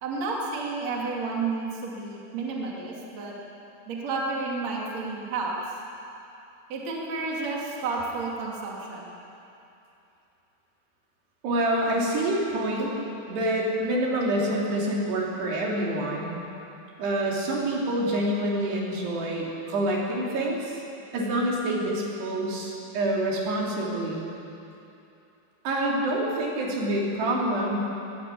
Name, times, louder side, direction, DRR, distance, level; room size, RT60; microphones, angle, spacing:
voice 1, 0.0-3.3 3.9-5.5 6.7-9.1, right 3 dB, 45° right, -2 dB, 3.3 m, -31 dB
voice 2, 11.4-12.9 13.3-16.4 17.0-20.8 21.1-24.2 25.7-27.8, right 1 dB, 70° right, -3 dB, 5.2 m, -27 dB
21.0 x 16.5 x 8.4 m, 2.8 s
omnidirectional pair, 5.0 m